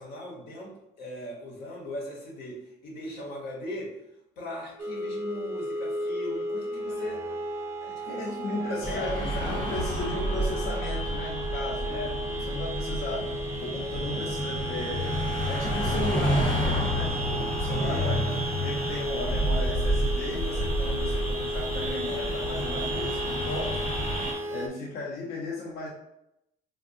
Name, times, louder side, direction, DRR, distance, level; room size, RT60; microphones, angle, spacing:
voice 1, 0.0-3.9 4.4-7.2 7.8-9.8 11.8-12.2 17.8-18.3 23.2-23.5, left 1 dB, 90° left, -2 dB, 1.1 m, -38 dB
sound 1, 4.8-24.7, right 1 dB, 15° right, 0.3 m, -35 dB
voice 2, 7.9-13.4 13.6-15.1 15.5-23.8 24.5-25.9, left 2 dB, 70° left, -3 dB, 0.7 m, -35 dB
sound 2, 8.8-24.3, equal, 25° left, 1.0 m, -29 dB
3.5 x 2.2 x 2.6 m, 0.83 s
cardioid pair, 110°, 17 cm